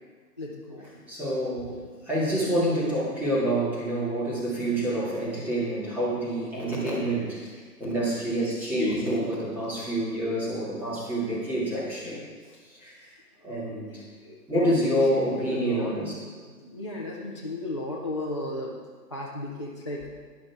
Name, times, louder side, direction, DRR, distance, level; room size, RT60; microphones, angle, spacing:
voice 1, 0.4-0.9 13.5-13.9 14.2-15.9 16.5-18.7 19.1-20.0, left 1 dB, 20° left, -5 dB, 0.5 m, -35 dB
voice 2, 1.1-1.8 2.1-7.4 7.8-12.2 12.8-12.9 13.4-14.0 14.5-16.1, right 1 dB, 5° right, -9 dB, 2.1 m, -27 dB
12.0 x 10.5 x 3.5 m, 1.5 s
hypercardioid pair, 150°, 50 cm